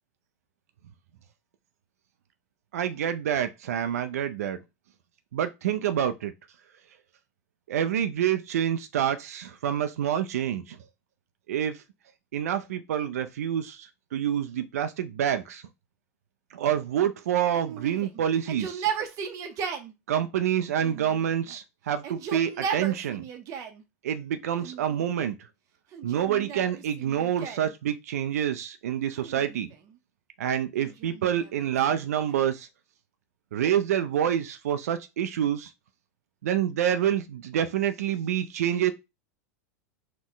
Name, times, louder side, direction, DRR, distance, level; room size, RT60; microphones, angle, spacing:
voice 1, 2.7-4.6 5.3-6.3 7.7-10.8 11.5-11.8 12.3-15.6 16.5-18.9 20.1-23.2 24.0-25.4 26.0-29.7 30.4-32.7 33.5-35.7 36.4-38.9, right 10 dB, 75° right, 0.4 m, -27 dB
Yell, 17.5-19.9 20.8-21.6 21.9-23.8 24.6-25.2 25.9-27.7 29.1-30.0 30.8-32.5, right 7 dB, 40° right, 0.7 m, -36 dB
4.3 x 2.2 x 3.8 m
hypercardioid pair, 95°, 8 cm